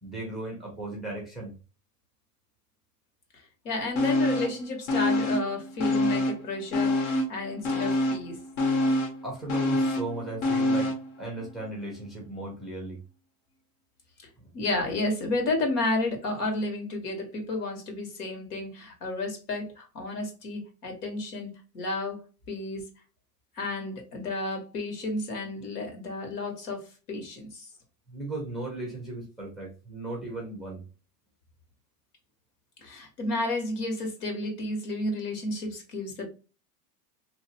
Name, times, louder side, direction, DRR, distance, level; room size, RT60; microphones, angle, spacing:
voice 1, 0.0-1.5 9.2-13.0 28.1-30.8, right 2 dB, ahead, 0.6 m, -36 dB
voice 2, 3.6-8.4 14.5-22.8 23.5-27.7 32.8-36.3, left 2 dB, 75° left, 1.8 m, -32 dB
sound 1, 4.0-4.6 4.9-6.4 6.7-11.1 11.4-11.5, left 1 dB, 50° left, 1.1 m, -26 dB
3.0 x 2.5 x 2.8 m
supercardioid pair, 150°, 47 cm